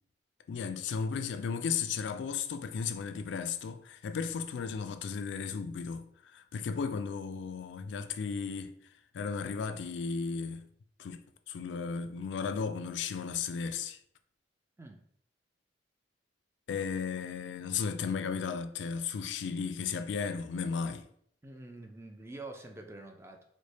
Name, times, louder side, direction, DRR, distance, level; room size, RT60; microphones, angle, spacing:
voice 1, 0.5-8.8 9.1-10.7 11.0-14.0 16.7-21.0, left 6 dB, 80° left, 0.3 m, -35 dB
voice 2, 21.4-23.4, right 2 dB, 15° right, 0.4 m, -46 dB
3.2 x 2.2 x 4.0 m
head